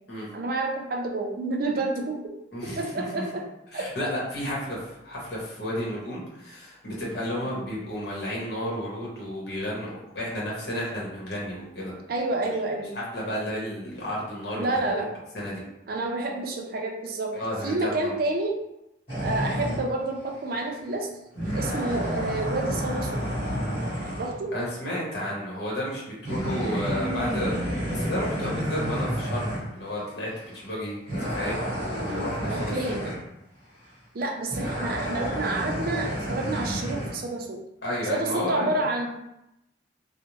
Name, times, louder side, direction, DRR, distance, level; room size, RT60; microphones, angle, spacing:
voice 1, 0.3-2.2 2.6-3.5 3.7-3.8 7.3-7.6 12.1-13.0 14.5-15.1 15.9-17.4 17.6-18.6 19.2-21.1 21.5-23.2 24.2-24.5 32.5-33.1 34.1-37.6 38.1-39.1, right 2 dB, 50° right, 1 dB, 0.4 m, -29 dB
voice 2, 2.5-3.2 3.7-11.9 12.9-14.8 15.3-15.6 17.3-18.1 24.5-31.6 32.0-32.9 37.8-38.8, equal, 60° left, -5 dB, 1.0 m, -32 dB
sound 1, 19.1-19.9 20.6-20.7 21.3-24.3 26.2-29.7 30.4-30.6 31.1-33.2 34.5-37.2, equal, 30° left, 1.3 m, -30 dB
2.5 x 2.1 x 3.0 m, 0.86 s
head